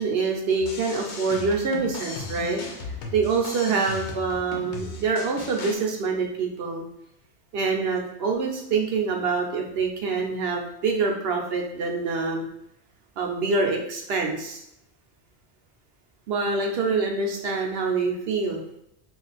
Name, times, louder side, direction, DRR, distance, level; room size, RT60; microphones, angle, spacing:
voice 1, 0.0-2.6 3.1-6.8 7.5-12.4 13.2-14.6 16.3-18.6, right 4 dB, 70° right, 1 dB, 0.8 m, -25 dB
sound 1, 0.6-5.8, left 3 dB, 80° left, 0.9 m, -37 dB
2.4 x 2.4 x 3.9 m, 0.77 s
omnidirectional pair, 1.1 m